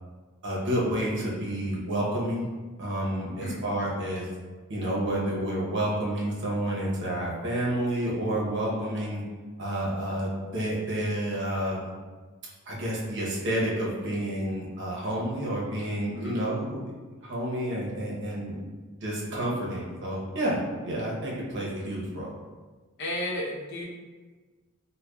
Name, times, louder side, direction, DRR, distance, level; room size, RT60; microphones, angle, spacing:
voice 1, 0.4-2.5 2.8-4.3 4.7-9.2 9.6-11.9 12.7-16.9 17.2-18.6 19.0-22.3, right 1 dB, 55° right, -5 dB, 0.8 m, -29 dB
voice 2, 3.3-3.6 16.1-16.4 23.0-23.8, left 1 dB, 55° left, -4 dB, 0.7 m, -33 dB
4.8 x 2.2 x 2.3 m, 1.4 s
head